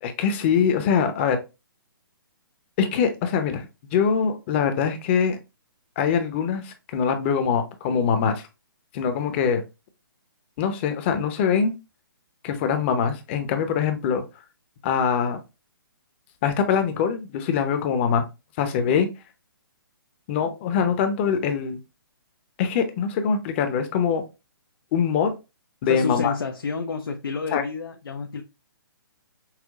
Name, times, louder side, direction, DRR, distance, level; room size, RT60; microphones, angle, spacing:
voice 1, 0.0-1.4 2.8-3.7 3.9-5.4 6.0-8.4 8.9-9.6 10.6-11.7 12.4-14.2 14.8-15.4 16.4-18.3 18.6-19.1 20.3-21.8 22.6-24.2 24.9-25.3 25.8-26.3 27.5-27.6, left 7 dB, 30° left, 0.7 m, -23 dB
voice 2, 25.9-28.4, left 4 dB, 85° left, 0.6 m, -29 dB
5.7 x 2.2 x 2.4 m
hypercardioid pair, 145°, 12 cm